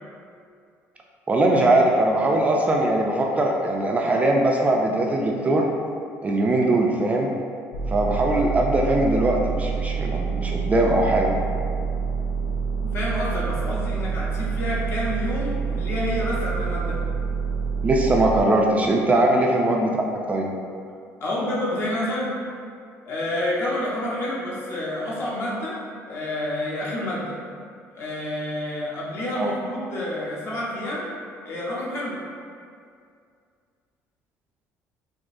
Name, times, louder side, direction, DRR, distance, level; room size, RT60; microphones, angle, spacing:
voice 1, 1.3-5.7 6.2-7.3 7.9-11.4 17.8-19.9 20.3-20.5 29.4-29.5, right 1 dB, 25° right, 0 dB, 0.3 m, -21 dB
sound 1, 7.7-18.4, right 5 dB, 80° left, 0.4 m, -27 dB
voice 2, 12.8-17.0 19.4-19.5 21.2-22.3 23.0-25.8 26.1-27.3 27.9-31.1 31.4-32.2, left 1 dB, 45° left, -6 dB, 0.9 m, -28 dB
3.8 x 2.7 x 2.6 m, 2.3 s
cardioid pair, 110°, 6 cm